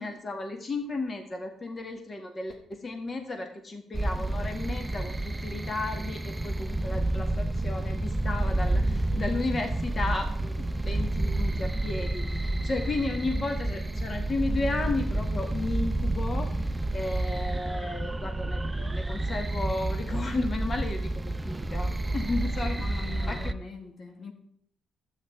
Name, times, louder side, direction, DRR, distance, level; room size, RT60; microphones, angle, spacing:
voice 1, 0.0-21.1 21.4-23.4, left 2 dB, 35° left, 1.8 m, -34 dB
sound 1, 3.9-23.5, right 1 dB, 15° right, 0.5 m, -30 dB
voice 2, 22.8-24.3, left 5 dB, 50° left, 1.8 m, -42 dB
12.0 x 8.9 x 4.5 m
cardioid pair, 90°, 0 cm